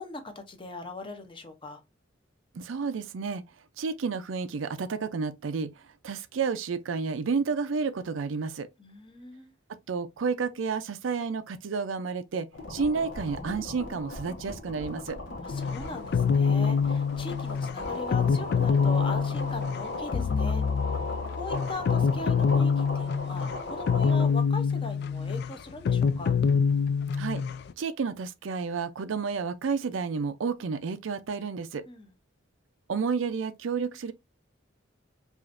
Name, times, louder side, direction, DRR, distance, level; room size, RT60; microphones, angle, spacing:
voice 1, 0.0-1.8 8.8-9.5 15.4-26.4 31.9-32.1, left 2 dB, 25° left, 0.7 m, -40 dB
voice 2, 2.5-3.4 3.8-8.7 9.9-15.2 27.2-27.4 27.8-31.9 32.9-34.1, right 5 dB, 80° right, 0.5 m, -31 dB
sound 1, 12.5-24.3, left 2 dB, 80° left, 1.1 m, -37 dB
sound 2, 15.5-27.7, left 6 dB, 55° left, 0.3 m, -26 dB
4.9 x 2.5 x 2.5 m
head